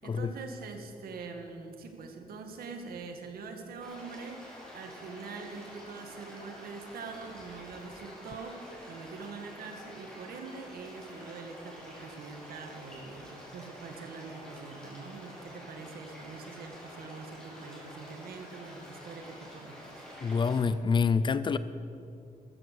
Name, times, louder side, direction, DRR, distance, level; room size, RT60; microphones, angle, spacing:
voice 1, 0.0-20.1, right 4 dB, 90° right, 4 dB, 2.0 m, -44 dB
sound 1, 3.8-20.6, equal, 5° left, 4.8 m, -48 dB
voice 2, 20.2-21.6, left 5 dB, 30° left, 14 dB, 0.5 m, -27 dB
14.5 x 14.0 x 7.0 m, 2.6 s
wide cardioid pair, 175°, 15 cm